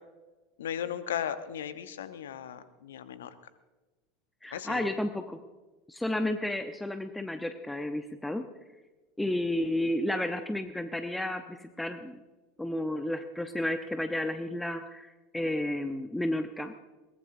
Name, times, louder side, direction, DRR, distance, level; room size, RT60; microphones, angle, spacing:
voice 1, 0.6-3.3 4.5-4.9, left 9 dB, 70° left, 11 dB, 1.0 m, -36 dB
voice 2, 4.4-5.4 5.9-8.5 9.2-12.2 12.6-16.7, left 1 dB, 5° left, 8 dB, 0.9 m, -32 dB
22.0 x 19.5 x 2.7 m, 1.2 s
figure-of-eight pair, 75°, 0 cm